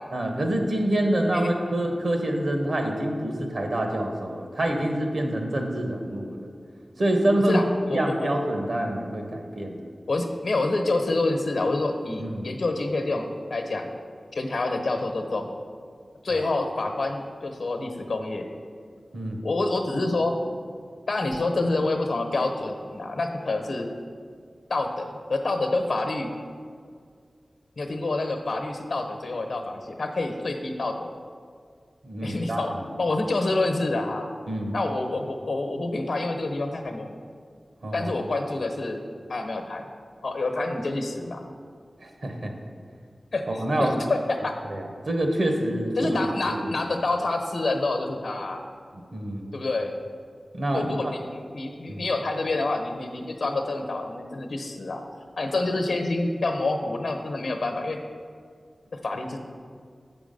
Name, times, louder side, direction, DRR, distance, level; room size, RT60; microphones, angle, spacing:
voice 1, 0.1-6.5 7.0-7.6 7.9-9.8 12.2-12.5 16.3-16.5 19.1-19.4 32.0-32.8 34.5-34.8 37.8-38.1 42.0-42.5 43.6-43.9 44.7-46.8 49.1-49.5 50.5-51.0 51.9-52.1, right 1 dB, 75° right, 2 dB, 1.1 m, -26 dB
voice 2, 7.9-8.3 10.1-13.9 14.3-15.5 16.2-18.5 19.4-20.3 21.1-23.9 24.7-26.3 27.8-31.1 32.2-32.7 33.0-34.3 34.7-37.1 37.9-39.0 39.3-39.9 40.2-41.5 43.3-44.6 46.0-48.6 49.5-49.9 50.7-55.0 55.4-58.0 59.0-59.4, left 2 dB, 85° left, 4 dB, 0.9 m, -27 dB
7.1 x 6.0 x 5.3 m, 2.1 s
wide cardioid pair, 60°, 0 cm